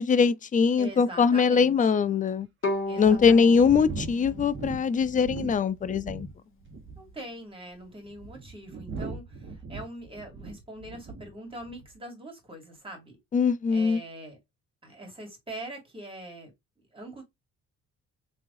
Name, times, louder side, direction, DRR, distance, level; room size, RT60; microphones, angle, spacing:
voice 1, 0.0-2.5 3.0-6.3 13.3-14.0, left 6 dB, 25° left, 0.4 m, -22 dB
voice 2, 0.8-2.0 2.9-3.5 7.0-13.2 13.7-14.4 14.8-16.5 16.9-17.2, right 1 dB, 20° right, 1.9 m, -43 dB
sound 1, 0.8-0.9 1.5-1.6 2.3-2.4 3.0-6.3 6.6-7.1 7.8-11.3 11.6-11.9, right 3 dB, 40° right, 1.1 m, -39 dB
Bowed string instrument, 2.6-5.7, left 2 dB, 45° left, 1.5 m, -35 dB
3.4 x 3.1 x 2.5 m
cardioid pair, 90°, 30 cm